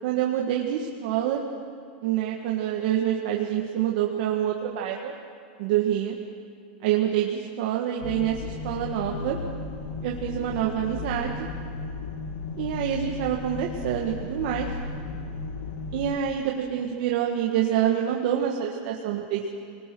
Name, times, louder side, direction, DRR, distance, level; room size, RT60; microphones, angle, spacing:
voice 1, 0.0-1.4 2.0-5.1 5.6-6.1 6.8-9.4 10.0-11.5 12.6-14.7 15.9-19.6, right 10 dB, 55° right, 0 dB, 1.7 m, -26 dB
sound 1, 8.0-16.2, left 4 dB, 75° left, 2.5 m, -35 dB
26.5 x 20.0 x 6.2 m, 2.4 s
supercardioid pair, 160°, 5 cm